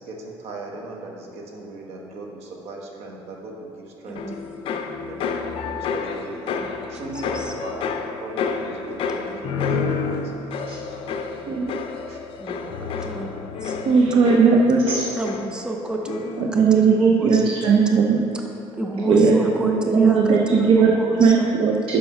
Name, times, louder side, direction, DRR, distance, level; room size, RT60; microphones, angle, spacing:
voice 1, 0.1-4.2 5.0-6.5 6.9-10.2 10.9-11.4 11.7-12.2 12.5-13.8 18.8-19.2 21.6-21.7, right 2 dB, 75° right, 0 dB, 1.1 m, -39 dB
voice 2, 4.0-4.7 6.6-6.9 7.1-7.5 9.6-9.7 10.7-10.8 12.4-12.7 13.0-13.3 13.6-13.7 14.1-14.2 15.1-18.0 18.3-18.4 18.7-21.5, right 1 dB, 10° right, 2 dB, 0.6 m, -29 dB
sound 1, 4.2-15.8 16.0-16.6, left 5 dB, 60° left, 0.5 m, -29 dB
voice 3, 13.8-15.0 16.4-18.2 19.1-19.4 19.6-20.9 21.2-22.0, right 5 dB, 55° right, 0 dB, 0.6 m, -17 dB
5.6 x 5.4 x 5.5 m, 3.0 s
cardioid pair, 115°, 11 cm